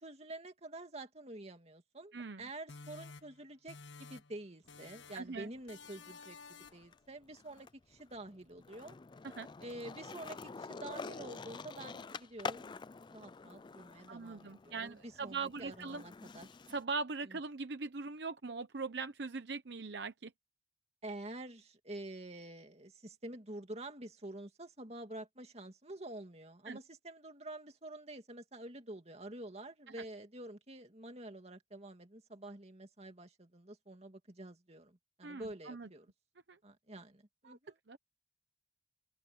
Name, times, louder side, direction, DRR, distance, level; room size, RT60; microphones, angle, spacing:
voice 1, 0.0-9.0 9.6-12.7 13.1-16.5 17.3-17.4 21.0-36.1 36.6-37.8, right 1 dB, 35° right, 2.4 m, -48 dB
voice 2, 2.1-2.5 5.1-5.5 9.2-9.5 14.1-16.0 16.7-20.3 26.7-26.8 35.2-35.9 36.5-36.6 37.4-37.6 37.9-38.0, right 4 dB, 65° right, 0.8 m, -41 dB
sound 1, 2.7-4.4 4.7-5.4 5.7-6.9, left 4 dB, 85° left, 1.4 m, -53 dB
Skateboard, 4.7-6.3 6.6-16.8, left 4 dB, 25° left, 0.4 m, -48 dB
head